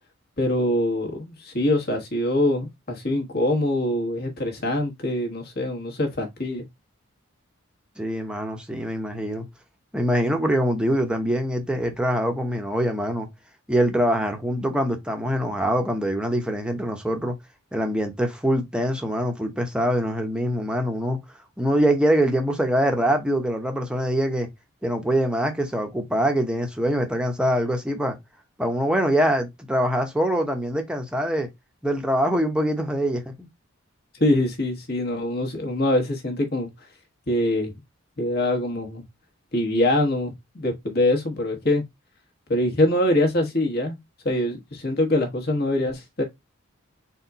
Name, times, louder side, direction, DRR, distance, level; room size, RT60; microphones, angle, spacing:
voice 1, 0.4-6.6 34.2-36.7 37.3-37.7 38.2-39.0 39.5-41.8 42.5-44.0 44.2-46.2, left 1 dB, 45° left, 1.3 m, -24 dB
voice 2, 8.0-9.5 9.9-13.3 13.7-17.3 17.7-21.2 21.6-24.5 24.8-28.2 28.6-31.5 31.8-33.5, equal, 5° right, 0.7 m, -24 dB
4.2 x 2.3 x 3.9 m
head